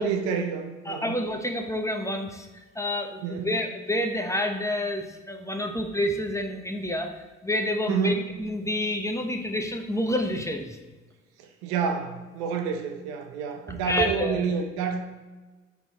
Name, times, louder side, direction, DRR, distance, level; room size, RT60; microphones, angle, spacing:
voice 1, 0.0-1.2 3.2-3.6 7.9-8.3 11.4-15.0, right 6 dB, 80° right, 5 dB, 0.6 m, -29 dB
voice 2, 0.9-2.5 2.7-10.8 13.8-14.4, left 1 dB, 10° left, 4 dB, 0.8 m, -28 dB
5.5 x 4.6 x 4.1 m, 1.2 s
hypercardioid pair, 45°, 34 cm